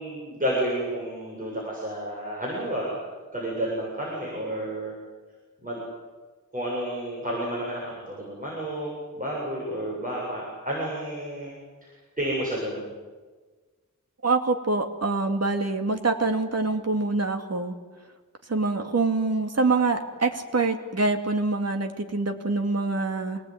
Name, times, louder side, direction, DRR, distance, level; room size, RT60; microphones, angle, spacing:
voice 1, 0.0-2.9 3.3-4.9 5.6-5.8 6.5-11.6 11.8-12.9, right 1 dB, 25° right, -4 dB, 7.7 m, -31 dB
voice 2, 14.2-17.8 18.5-23.4, right 3 dB, 50° right, 5 dB, 2.5 m, -25 dB
27.0 x 19.5 x 9.5 m, 1.4 s
wide cardioid pair, 110°, 32 cm